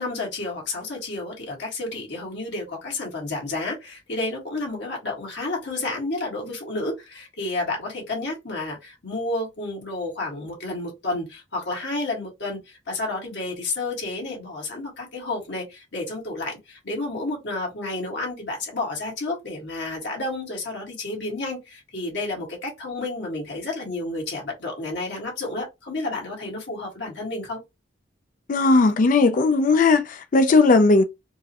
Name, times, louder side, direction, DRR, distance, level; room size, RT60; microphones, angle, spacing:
voice 1, 0.0-27.6, left 2 dB, 70° left, 1.7 m, -31 dB
voice 2, 28.5-31.0, left 3 dB, 45° left, 0.4 m, -17 dB
4.5 x 2.1 x 2.8 m
head